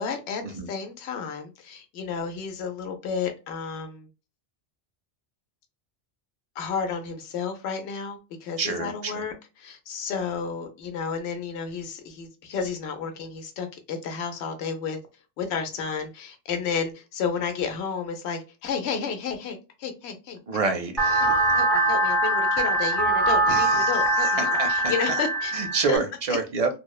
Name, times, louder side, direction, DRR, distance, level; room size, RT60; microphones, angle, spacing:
voice 1, 0.0-4.1 6.6-15.0 15.4-20.7 21.2-25.5 25.9-26.0 26.3-26.4, left 6 dB, 85° left, 0.9 m, -32 dB
voice 2, 8.6-9.2 20.5-21.3 23.5-23.9 24.2-24.9 25.5-26.7, right 4 dB, 45° right, 0.5 m, -28 dB
sound 1, 21.0-26.0, right 1 dB, ahead, 0.5 m, -22 dB
3.0 x 2.0 x 2.2 m
omnidirectional pair, 1.1 m